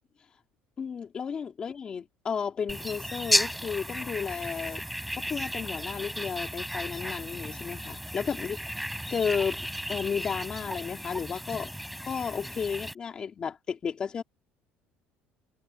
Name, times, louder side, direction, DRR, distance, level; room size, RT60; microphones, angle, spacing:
voice 1, 0.8-4.8 5.2-8.6 9.1-11.7 12.1-14.2, left 6 dB, 25° left, 3.5 m, -33 dB
sound 1, 2.7-12.9, equal, ahead, 5.4 m, -34 dB
cardioid pair, 175°, 4 cm